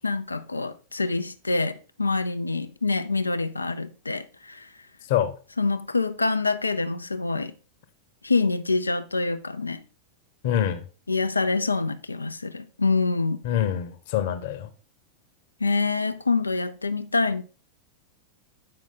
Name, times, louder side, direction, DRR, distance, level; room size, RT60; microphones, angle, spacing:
voice 1, 0.0-4.7 5.6-7.5 8.2-9.8 11.1-13.4 15.6-17.4, left 3 dB, 80° left, 0.5 m, -26 dB
voice 2, 10.4-10.9 13.4-14.7, left 10 dB, 50° left, 1.0 m, -25 dB
8.7 x 5.2 x 3.7 m
figure-of-eight pair, 90°, 0 cm